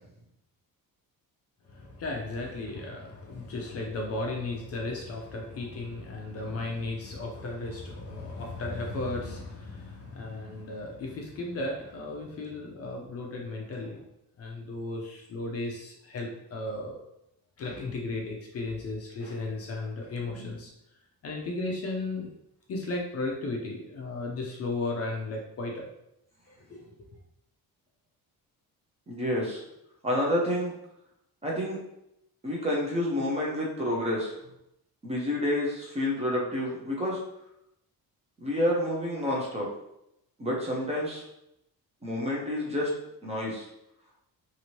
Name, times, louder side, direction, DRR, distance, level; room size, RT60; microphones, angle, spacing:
voice 1, 1.7-14.1 14.4-17.0 17.6-20.7 21.2-22.3 22.7-25.9 26.5-26.9, left 2 dB, 40° left, 0 dB, 0.4 m, -35 dB
voice 2, 29.1-29.6 30.0-30.7 31.4-31.8 32.4-34.3 35.0-37.2 38.4-39.7 40.4-41.2 42.0-42.9 43.2-43.7, left 1 dB, 15° right, -4 dB, 0.5 m, -29 dB
2.8 x 2.5 x 2.9 m, 0.82 s
cardioid pair, 175°, 38 cm